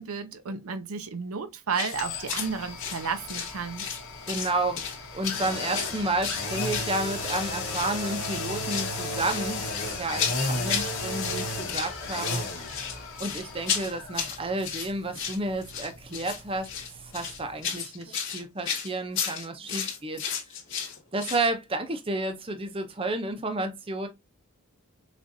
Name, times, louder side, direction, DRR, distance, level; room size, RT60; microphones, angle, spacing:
voice 1, 0.0-3.9, right 5 dB, 80° right, 0.6 m, -32 dB
sound 1, 1.7-2.0 2.3-2.5 2.8-4.0 4.3-5.0 5.2-7.4 7.7-7.9 8.2-8.9 9.2-10.9 11.2-11.9 12.2-21.5, left 7 dB, 55° left, 2.1 m, -33 dB
sound 2, 1.9-17.7 18.0-18.1, left 2 dB, 75° left, 1.6 m, -35 dB
voice 2, 4.3-12.4 13.2-20.3 21.1-24.1, right 2 dB, 25° right, 0.6 m, -31 dB
6.2 x 2.5 x 2.6 m
head